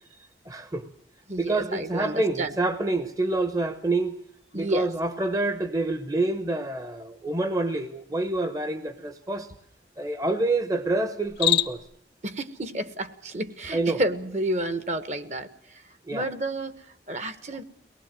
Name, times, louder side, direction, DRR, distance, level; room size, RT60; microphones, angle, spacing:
voice 1, 0.5-0.9 1.4-4.2 4.5-9.5 10.0-11.8 13.7-14.0 16.1-16.3, right 2 dB, 20° right, 1.0 m, -27 dB
voice 2, 1.3-2.5 4.5-4.9 12.2-15.8 16.1-17.6, right 1 dB, 40° right, 1.3 m, -31 dB
Cricket, 11.2-12.0, left 13 dB, 75° left, 0.9 m, -25 dB
23.5 x 19.5 x 7.5 m
head